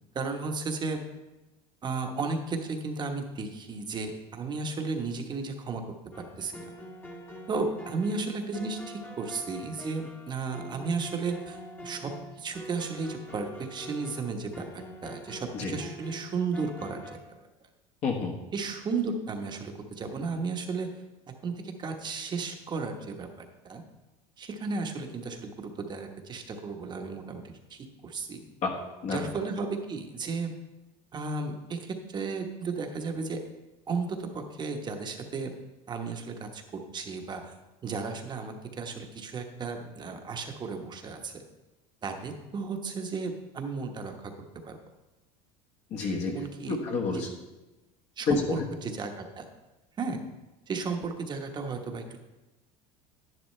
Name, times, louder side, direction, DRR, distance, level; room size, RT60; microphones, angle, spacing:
voice 1, 0.1-1.0 1.8-5.8 6.1-6.6 7.5-12.1 12.4-17.2 18.5-20.9 21.4-23.8 24.4-28.4 29.1-30.5 31.1-33.4 33.9-35.5 35.9-37.6 37.8-41.4 42.0-44.3 44.6-44.8 46.3-46.8 47.1-47.2 48.2-49.5 50.0-50.2 50.7-52.2, right 4 dB, 25° right, 4 dB, 1.2 m, -34 dB
sound 1, 6.1-17.2, equal, 10° left, 1.2 m, -45 dB
voice 2, 18.0-18.3 28.6-29.3 45.9-46.4 46.7-47.3 48.3-48.7, left 4 dB, 45° left, 0 dB, 1.4 m, -29 dB
10.5 x 10.0 x 3.3 m, 1.1 s
supercardioid pair, 130°, 16 cm